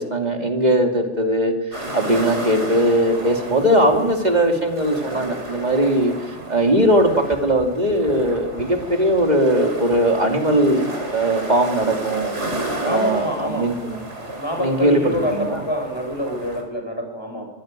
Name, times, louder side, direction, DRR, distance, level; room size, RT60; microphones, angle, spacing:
voice 1, 0.0-6.1 6.5-12.3 12.8-14.0 14.6-15.6, right 1 dB, 35° right, 3 dB, 2.8 m, -19 dB
sound 1, 1.7-16.6, right 1 dB, 75° right, 4.8 m, -32 dB
voice 2, 12.8-13.7 14.3-17.5, equal, 20° left, 3 dB, 5.9 m, -26 dB
23.5 x 16.0 x 9.0 m, 1.2 s
omnidirectional pair, 1.2 m